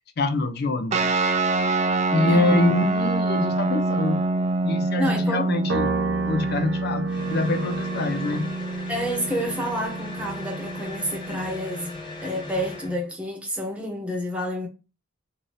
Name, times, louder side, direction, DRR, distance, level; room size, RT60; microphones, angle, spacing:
voice 1, 0.2-1.1 2.1-4.2 4.6-5.9 6.3-8.5, left 2 dB, 55° left, 0.5 m, -25 dB
sound 1, 0.9-11.8, right 2 dB, 35° right, 0.3 m, -26 dB
voice 2, 2.3-2.6 5.0-5.5 8.9-14.7, equal, 5° right, 0.8 m, -29 dB
Piano, 5.7-12.3, right 5 dB, 80° right, 0.6 m, -34 dB
sound 2, 7.1-13.0, left 2 dB, 25° left, 0.8 m, -38 dB
2.7 x 2.6 x 3.1 m
head